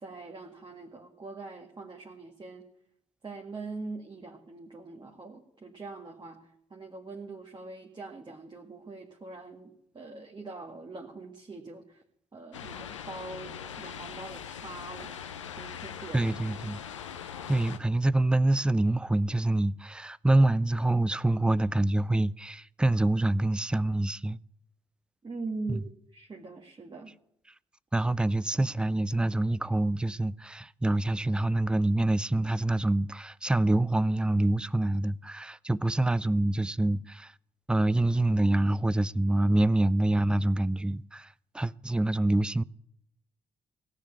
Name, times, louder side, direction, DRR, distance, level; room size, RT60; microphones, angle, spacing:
voice 1, 0.0-2.7 3.2-12.0 12.3-16.3 25.2-27.1, right 3 dB, 30° right, 1.8 m, -43 dB
sound 1, 12.5-17.8, left 8 dB, 90° left, 0.6 m, -41 dB
voice 2, 16.1-16.8 17.5-24.4 25.7-25.8 27.9-37.3 37.7-42.6, right 1 dB, 5° right, 0.4 m, -26 dB
16.5 x 6.6 x 8.6 m
hypercardioid pair, 45°, 15 cm